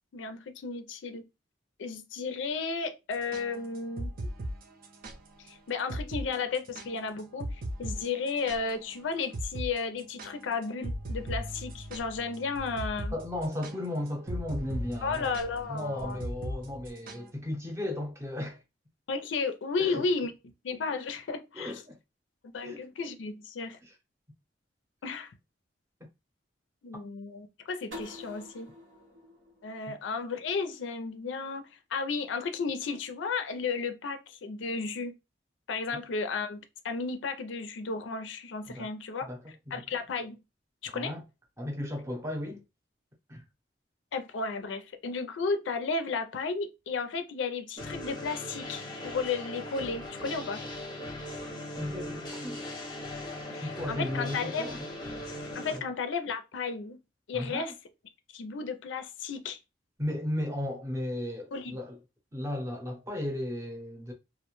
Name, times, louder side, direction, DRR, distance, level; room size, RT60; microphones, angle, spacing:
voice 1, 0.1-1.2 1.8-4.1 5.4-13.1 15.0-16.2 19.1-20.3 20.6-21.7 22.4-23.8 25.0-25.3 26.8-28.7 29.6-35.1 35.7-39.3 39.7-40.4 40.8-41.1 44.1-50.6 53.5-54.7 55.5-57.0 57.3-57.7 58.3-59.6 61.5-61.7, left 4 dB, 80° left, 0.4 m, -33 dB
sound 1, 3.1-5.2 5.5-5.6 5.9-6.3 6.5-8.9 9.3-9.7 10.0-17.3, right 1 dB, 50° right, 0.4 m, -38 dB
voice 2, 13.1-15.4 15.7-18.6 19.8-20.0 21.5-22.0 22.6-22.9 23.8-23.9 29.9-30.0 38.7-38.9 39.2-39.8 40.9-41.2 41.6-42.6 43.3-43.4 51.8-52.6 53.3-54.9 55.7-55.8 57.3-57.7 60.0-62.0 62.3-64.1, left 1 dB, 15° right, 0.7 m, -35 dB
sound 2, 27.9-30.7, left 1 dB, 90° right, 1.1 m, -47 dB
sound 3, 47.8-55.8, left 1 dB, 25° left, 0.7 m, -39 dB
2.4 x 2.1 x 3.0 m
head